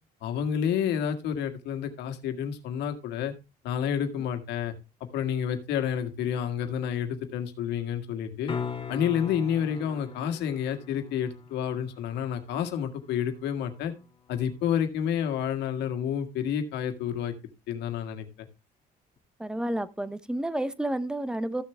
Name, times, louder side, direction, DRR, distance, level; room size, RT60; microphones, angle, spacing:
voice 1, 0.2-3.3 3.6-4.7 5.1-8.5 8.9-13.9 14.3-17.3 17.7-18.5, left 8 dB, 85° left, 1.8 m, -29 dB
sound 1, 8.5-14.5 19.2-19.3, left 6 dB, 30° left, 1.7 m, -41 dB
voice 2, 19.4-21.6, right 1 dB, 5° right, 0.8 m, -30 dB
14.0 x 6.9 x 3.4 m
cardioid pair, 110°, 17 cm